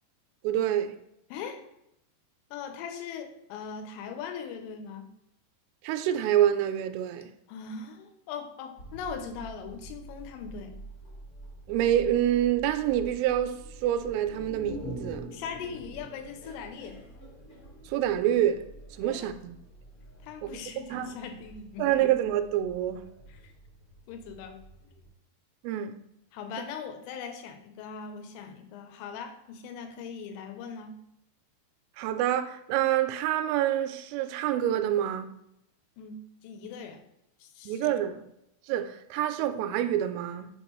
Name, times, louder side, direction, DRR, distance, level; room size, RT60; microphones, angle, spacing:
voice 1, 0.4-0.9 5.8-7.3 11.7-15.3 17.9-18.6 19.0-19.6 20.4-20.6 20.9-21.2 21.8-23.1 25.6-25.9 32.0-35.3 37.7-38.2 38.7-40.5, right 11 dB, 85° right, 3.0 m, -27 dB
voice 2, 1.3-1.6 2.5-5.1 7.5-10.8 15.3-17.0 19.0-19.3 20.2-22.1 23.3-23.5 24.1-24.6 26.3-30.9 36.0-37.0 37.4-38.0, left 6 dB, 90° left, 3.4 m, -40 dB
sound 1, 8.8-25.1, right 1 dB, 50° left, 1.6 m, -49 dB
sound 2, 14.0-17.8 18.1-18.2, right 1 dB, 30° left, 1.3 m, -42 dB
7.0 x 5.3 x 3.0 m
omnidirectional pair, 5.7 m